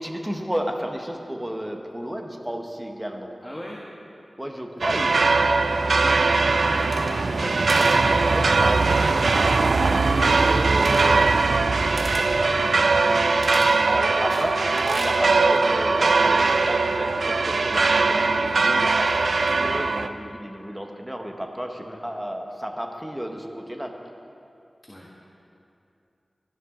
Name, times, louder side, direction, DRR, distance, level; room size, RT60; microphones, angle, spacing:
voice 1, 0.0-3.3 4.4-5.1 7.4-23.9, equal, 10° right, 3 dB, 1.2 m, -33 dB
voice 2, 3.4-3.8 4.9-5.0 5.7-7.0 21.8-22.0 24.9-25.1, equal, 10° left, -3 dB, 1.5 m, -40 dB
sound 1, 4.8-20.1, right 3 dB, 85° right, 0.4 m, -20 dB
sound 2, 6.7-7.4 7.7-8.0 10.7-11.2 12.0-12.3 13.4-13.7 14.3-15.2, right 1 dB, 45° right, 1.8 m, -34 dB
17.5 x 12.5 x 3.8 m, 2.7 s
wide cardioid pair, 75°, 0 cm